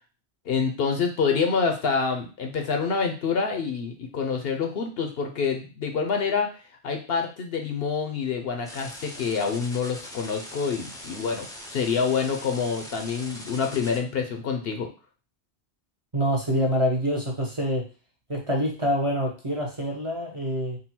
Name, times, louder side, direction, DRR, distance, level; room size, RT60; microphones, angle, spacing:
voice 1, 0.5-6.5 6.8-14.9, left 5 dB, 65° left, 4 dB, 0.8 m, -27 dB
sound 1, 8.6-14.0, left 1 dB, 5° left, 0.4 m, -42 dB
voice 2, 16.1-17.8 18.3-20.8, equal, 30° right, -1 dB, 0.8 m, -26 dB
3.8 x 2.2 x 4.2 m, 0.35 s
omnidirectional pair, 1.2 m